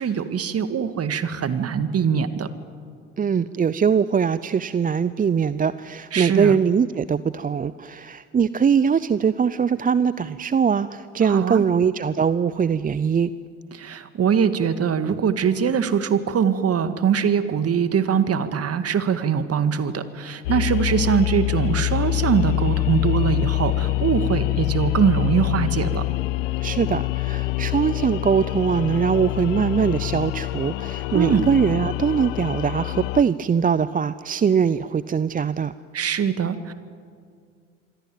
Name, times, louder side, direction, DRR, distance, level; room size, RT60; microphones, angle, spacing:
voice 1, 0.0-2.5 6.1-6.6 11.2-11.6 13.7-26.0 31.1-31.4 35.9-36.7, right 7 dB, 40° right, 11 dB, 2.0 m, -22 dB
voice 2, 3.2-13.3 26.6-35.7, right 7 dB, 20° right, 16 dB, 0.7 m, -22 dB
sound 1, 20.4-33.2, left 19 dB, 75° left, 0.7 m, -25 dB
27.0 x 23.0 x 9.3 m, 2.2 s
hypercardioid pair, 60°, 39 cm